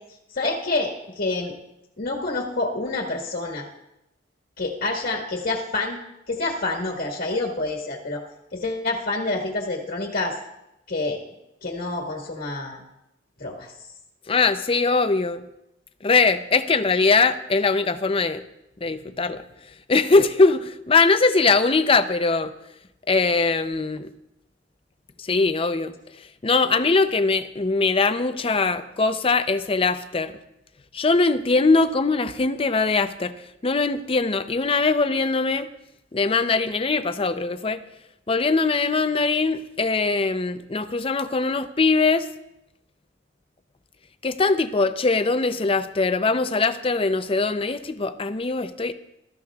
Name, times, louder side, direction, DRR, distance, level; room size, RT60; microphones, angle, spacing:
voice 1, 0.3-1.5 2.0-3.7 4.6-6.0 6.3-8.2 8.5-10.4 10.9-11.2 11.6-12.8 13.4-13.7, left 2 dB, 50° left, -1 dB, 1.6 m, -27 dB
voice 2, 14.3-15.4 16.0-18.4 18.8-19.4 19.9-22.5 23.1-24.1 25.2-25.9 26.4-30.3 30.9-33.3 33.6-35.7 36.1-37.8 38.3-42.3 44.2-48.9, left 3 dB, 30° left, 10 dB, 0.6 m, -21 dB
22.0 x 13.0 x 2.4 m, 0.87 s
head